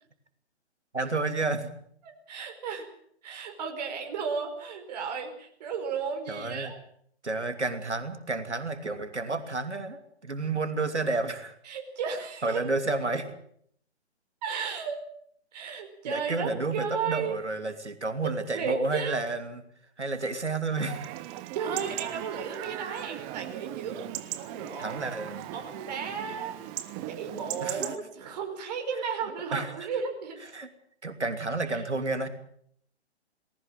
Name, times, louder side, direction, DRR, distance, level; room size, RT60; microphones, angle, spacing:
voice 1, 0.9-1.7 6.3-6.7 7.2-11.6 12.4-13.4 16.0-19.6 20.0-21.1 22.8-23.1 24.8-25.5 27.6-27.9 29.5-29.7 30.5-30.7 31.0-32.3, right 3 dB, 80° right, 8 dB, 2.9 m, -31 dB
voice 2, 2.0-2.9 3.2-6.7 11.6-12.6 14.4-15.0 15.5-17.4 18.2-19.2 21.5-24.1 24.4-25.1 25.5-26.6 27.1-30.4 31.7-31.8, right 6 dB, 35° right, 4 dB, 4.9 m, -34 dB
Chatter / Livestock farm animals working animals / Chirp tweet, 20.8-28.0, right 14 dB, 15° right, 1.0 m, -38 dB
19.5 x 18.0 x 8.9 m, 0.66 s
figure-of-eight pair, 135°, 34 cm